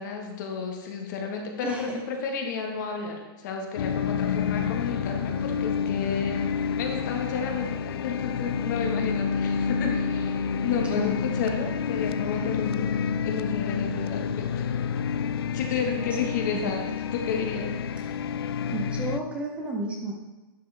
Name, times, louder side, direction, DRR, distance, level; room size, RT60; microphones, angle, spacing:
voice 1, 0.0-6.4 6.7-12.9 13.2-14.7 15.5-17.7, left 6 dB, 50° left, 2 dB, 1.5 m, -32 dB
sound 1, 3.8-19.2, left 6 dB, 75° left, 0.4 m, -28 dB
voice 2, 10.9-11.2 16.5-16.8 18.6-20.1, right 2 dB, 10° right, 0 dB, 0.8 m, -32 dB
11.0 x 6.4 x 3.4 m, 1.1 s
hypercardioid pair, 160°, 13 cm